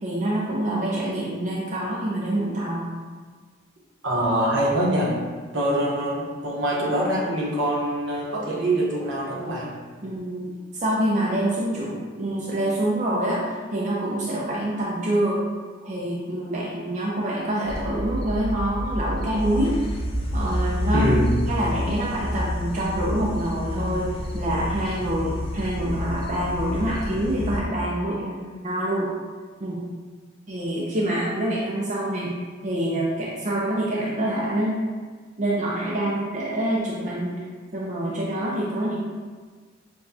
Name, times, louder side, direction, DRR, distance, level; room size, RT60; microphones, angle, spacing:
voice 1, 0.0-2.9 10.0-15.4 15.8-19.8 20.3-21.1 21.5-29.1 29.6-29.8 30.5-32.3 32.6-34.8 35.4-37.4 37.7-39.0, right 1 dB, 40° right, -5 dB, 0.5 m, -26 dB
voice 2, 4.0-5.2 5.5-9.7 20.9-21.4, right 1 dB, 70° right, -4 dB, 1.1 m, -24 dB
sound 1, 17.6-27.6, left 1 dB, 30° left, 0.5 m, -29 dB
6.6 x 2.3 x 2.8 m, 1.5 s
head